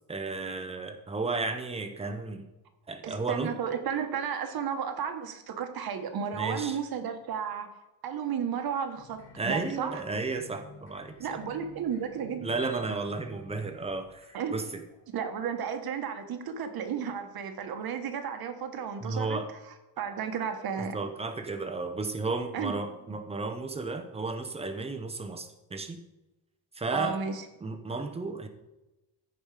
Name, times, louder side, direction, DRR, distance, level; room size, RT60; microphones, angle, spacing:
voice 1, 0.1-2.5 2.9-3.5 6.4-6.8 9.4-11.4 12.4-14.8 19.0-19.5 20.8-26.0 26.7-27.2 27.6-28.5, right 3 dB, 15° right, 7 dB, 0.8 m, -33 dB
voice 2, 3.0-7.7 8.0-10.0 11.2-12.5 14.3-14.6 15.1-19.4 20.0-21.0 22.5-22.7 26.9-27.4, right 7 dB, 60° right, 7 dB, 1.3 m, -33 dB
sound 1, 8.9-15.5, left 1 dB, 40° left, 3.6 m, -52 dB
15.0 x 5.3 x 5.0 m, 0.98 s
cardioid pair, 175°, 42 cm